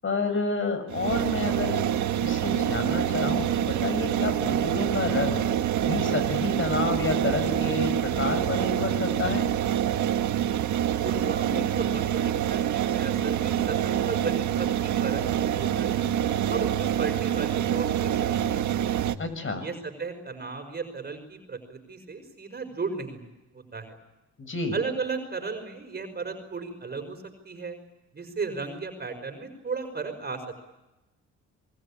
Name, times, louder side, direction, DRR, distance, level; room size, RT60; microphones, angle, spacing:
voice 1, 0.0-1.8 2.2-5.5 5.8-9.5 19.2-19.7 24.4-24.8, left 3 dB, 40° left, 10 dB, 6.9 m, -29 dB
sound 1, 0.9-19.2, right 10 dB, 70° right, 1.6 m, -26 dB
voice 2, 11.0-16.0 16.5-18.6 19.5-23.3 23.5-24.0 24.7-27.8 28.1-30.5, right 4 dB, 35° right, 6 dB, 5.3 m, -35 dB
28.0 x 22.0 x 8.7 m, 0.99 s
cardioid pair, 90°, 30 cm